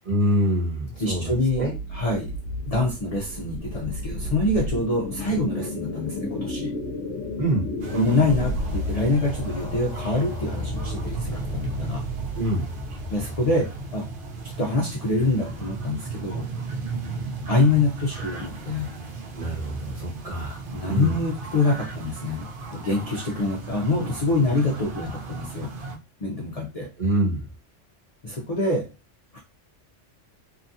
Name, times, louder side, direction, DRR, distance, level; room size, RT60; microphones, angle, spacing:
voice 1, 0.0-1.7 7.4-7.7 12.3-12.7 19.3-21.2 27.0-27.5, right 1 dB, 30° right, -3 dB, 1.1 m, -25 dB
sound 1, 1.0-14.2, left 1 dB, 70° left, 1.0 m, -32 dB
voice 2, 1.0-1.7 1.9-2.3 2.7-6.7 7.9-12.0 13.1-14.1 14.6-16.5 17.5-18.9 20.7-25.7 26.2-26.9 28.2-28.9 29.3-29.4, left 2 dB, 50° left, -1 dB, 0.4 m, -25 dB
sound 2, 7.8-26.0, right 4 dB, 55° right, 0.6 m, -35 dB
2.9 x 2.3 x 2.6 m, 0.29 s
omnidirectional pair, 1.3 m